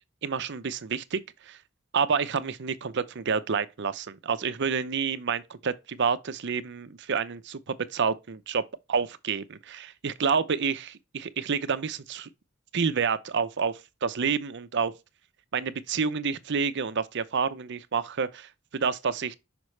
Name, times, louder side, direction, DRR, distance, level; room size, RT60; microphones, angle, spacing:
voice 1, 0.2-1.2 1.5-1.6 1.9-8.6 8.9-12.3 12.7-14.9 15.5-19.4, right 6 dB, 55° right, 0.6 m, -29 dB
6.0 x 5.1 x 3.2 m
head